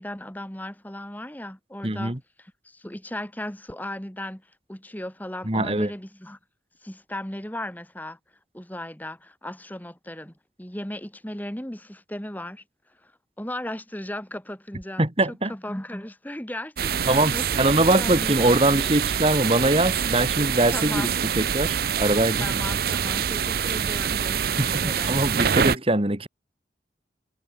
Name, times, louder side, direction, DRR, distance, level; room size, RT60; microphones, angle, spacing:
voice 1, 0.0-6.4 6.8-8.2 8.5-12.6 13.0-13.1 13.4-15.1 15.4-18.4 18.7-18.9 20.7-21.1 22.4-25.2, left 1 dB, 10° left, 2.1 m, -36 dB
voice 2, 1.8-2.2 5.5-5.9 15.0-15.5 17.1-21.1 21.4-22.5 24.6-26.3, right 1 dB, 30° right, 1.9 m, -22 dB
sound 1, 16.8-25.8, right 7 dB, 55° right, 0.6 m, -25 dB
head